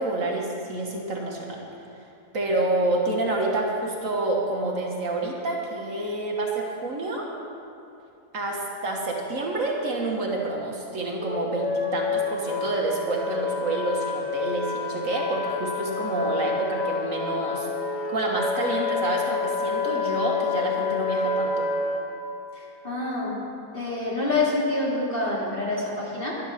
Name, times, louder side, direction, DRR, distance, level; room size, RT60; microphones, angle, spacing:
voice 1, 0.0-1.7 2.3-7.3 8.3-17.7 18.1-21.7, right 2 dB, 60° right, -1 dB, 1.8 m, -28 dB
Wind instrument woodwind instrument, 11.2-22.0, left 4 dB, 60° left, 1.6 m, -28 dB
voice 2, 22.5-23.4 23.7-26.4, left 2 dB, 35° left, -6 dB, 2.9 m, -27 dB
12.0 x 11.0 x 5.8 m, 2.6 s
omnidirectional pair, 1.6 m